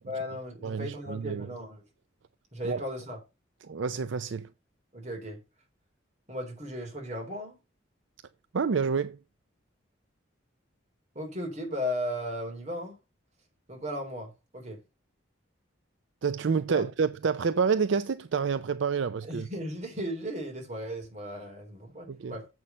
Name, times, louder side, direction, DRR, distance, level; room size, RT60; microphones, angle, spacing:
voice 1, 0.1-1.8 2.5-3.2 4.9-5.4 6.3-7.6 11.2-13.0 13.7-14.8 16.7-16.8 19.2-22.5, equal, 35° right, 3.5 m, -36 dB
voice 2, 0.6-1.5 2.6-2.8 3.6-4.5 8.5-9.2 16.2-19.5 22.1-22.4, right 5 dB, 70° right, 0.5 m, -28 dB
7.6 x 6.1 x 5.3 m
head